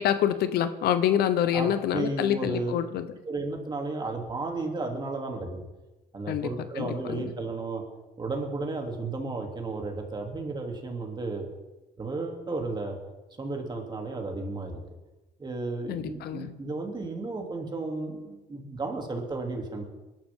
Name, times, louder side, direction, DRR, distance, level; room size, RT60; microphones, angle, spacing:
voice 1, 0.0-3.1 6.3-7.3 15.9-16.5, left 10 dB, 70° left, 11 dB, 1.0 m, -27 dB
voice 2, 1.5-2.7 3.3-5.6 6.1-7.8 8.2-11.5 12.0-13.0 13.4-14.8 15.4-19.8, right 3 dB, 25° right, 2 dB, 3.0 m, -33 dB
23.0 x 12.0 x 3.8 m, 1.1 s
cardioid pair, 110°, 17 cm